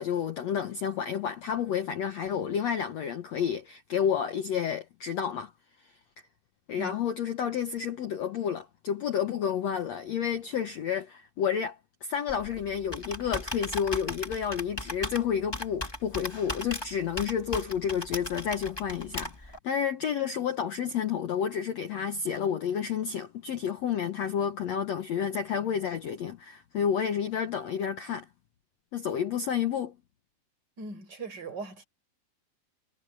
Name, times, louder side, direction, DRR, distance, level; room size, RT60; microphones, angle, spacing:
voice 1, 0.0-5.5 6.7-11.8 12.0-28.3 28.9-30.0, left 8 dB, 65° left, 1.7 m, -30 dB
Computer keyboard, 12.3-19.6, left 1 dB, 10° left, 1.8 m, -37 dB
voice 2, 30.8-31.8, right 3 dB, 25° right, 5.9 m, -39 dB
omnidirectional pair, 4.5 m